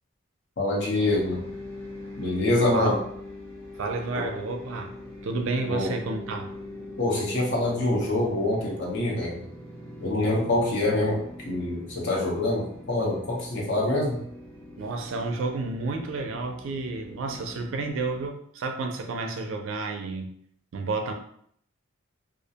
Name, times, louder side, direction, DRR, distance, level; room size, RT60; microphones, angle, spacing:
voice 1, 0.6-1.4 2.2-3.0 4.1-4.2 5.7-5.9 7.0-9.4 10.0-11.2 11.4-14.2, left 2 dB, 55° left, -3 dB, 0.8 m, -25 dB
sound 1, 1.0-18.3, left 1 dB, 10° left, 0.4 m, -42 dB
voice 2, 3.8-4.9 5.2-6.5 14.8-20.3 20.7-21.1, right 3 dB, 60° right, 4 dB, 0.4 m, -30 dB
2.4 x 2.1 x 2.7 m, 0.67 s
head